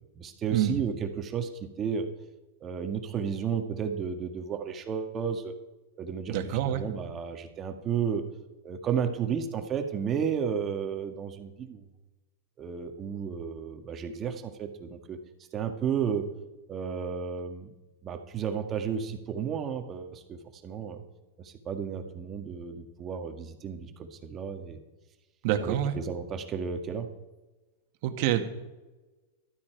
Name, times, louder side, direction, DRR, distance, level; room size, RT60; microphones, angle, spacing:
voice 1, 0.0-2.1 2.6-5.5 6.0-6.4 6.6-8.2 8.6-11.9 12.6-15.2 15.5-16.3 16.7-17.7 18.0-21.0 21.4-24.8 25.6-27.1, right 7 dB, 30° right, 6 dB, 1.7 m, -33 dB
voice 2, 6.3-6.8 25.4-26.0 28.0-28.4, right 11 dB, 55° right, 7 dB, 1.8 m, -26 dB
14.5 x 12.5 x 4.6 m, 1.1 s
hypercardioid pair, 120°, 0 cm